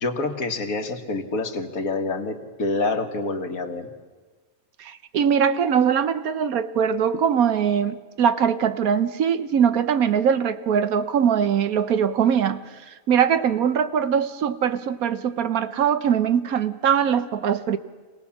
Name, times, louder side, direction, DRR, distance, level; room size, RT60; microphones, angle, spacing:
voice 1, 0.0-3.9, left 3 dB, 80° left, 2.0 m, -27 dB
voice 2, 4.8-12.6 13.1-17.8, right 8 dB, 85° right, 1.4 m, -21 dB
26.0 x 18.0 x 7.2 m
omnidirectional pair, 1.5 m